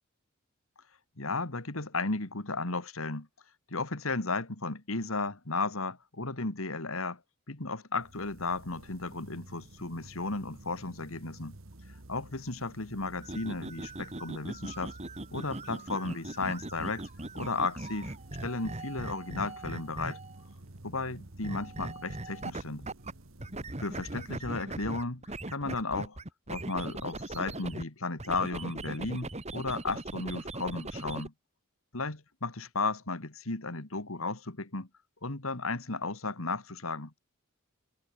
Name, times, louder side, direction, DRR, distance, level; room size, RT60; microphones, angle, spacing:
voice 1, 1.2-3.3 3.7-7.2 7.5-11.6 12.1-14.9 15.3-17.0 17.3-18.1 18.4-20.2 20.8-22.8 23.8-25.2 25.5-26.2 26.5-31.3 31.9-34.9 35.2-37.2, left 3 dB, 70° left, 2.4 m, -34 dB
sound 1, 8.0-25.5, right 1 dB, 65° right, 1.8 m, -52 dB
sound 2, 13.2-20.4 21.4-23.1 23.4-27.8 28.2-31.3, right 2 dB, 30° right, 2.1 m, -40 dB
head